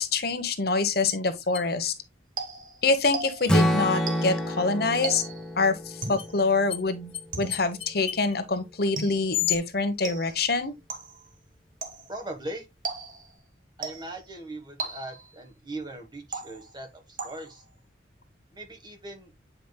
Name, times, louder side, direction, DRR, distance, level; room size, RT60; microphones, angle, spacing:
voice 1, 0.0-1.9 2.8-5.2 5.6-10.8, left 3 dB, 60° left, 1.0 m, -26 dB
sound 1, 1.5-1.7 3.4-4.4 6.2-6.3 6.7-6.8 7.1-7.2 7.5-8.3 9.3-9.6, left 11 dB, 30° left, 0.5 m, -32 dB
sound 2, 2.4-3.6 4.1-4.5 5.0-5.5 6.0-6.4 7.3-7.8 9.0-9.4 10.0-10.5 10.9-11.3 11.8-12.2 12.8-13.3 13.8-14.3 14.8-15.4 16.3-16.8 17.2-17.7, right 4 dB, 45° right, 1.5 m, -37 dB
Strum, 3.5-7.7, equal, 5° left, 1.2 m, -28 dB
voice 2, 12.1-12.7 13.8-17.6 18.5-19.3, right 1 dB, 25° right, 1.4 m, -39 dB
8.9 x 5.1 x 2.3 m
head